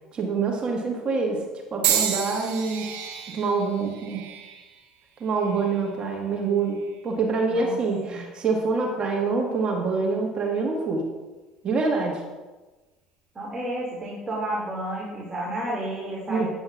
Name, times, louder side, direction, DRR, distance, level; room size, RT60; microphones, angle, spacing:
voice 1, 0.1-1.4 1.7-2.9 3.3-4.2 5.2-6.8 7.0-11.0 11.6-12.2 16.3-16.5, right 4 dB, 40° right, 1 dB, 1.3 m, -25 dB
sound 1, 1.8-6.0 6.7-7.1 8.1-8.3, right 9 dB, 65° right, 1.0 m, -31 dB
voice 2, 7.5-8.2 13.3-16.5, right 1 dB, 25° right, -5 dB, 2.2 m, -31 dB
9.2 x 7.7 x 2.3 m, 1.2 s
hypercardioid pair, 65°, 3 cm